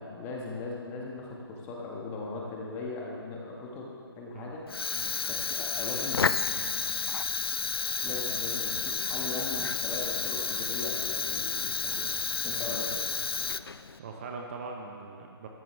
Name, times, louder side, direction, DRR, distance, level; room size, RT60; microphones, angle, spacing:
voice 1, 0.0-4.7 5.3-6.9 8.0-12.1 12.4-13.0, left 3 dB, 15° left, -2 dB, 1.9 m, -39 dB
Fire, 4.7-14.0, left 5 dB, 70° left, 0.5 m, -31 dB
voice 2, 14.0-15.5, right 4 dB, 30° right, 1 dB, 1.3 m, -41 dB
18.5 x 14.0 x 3.5 m, 2.2 s
figure-of-eight pair, 140°, 13 cm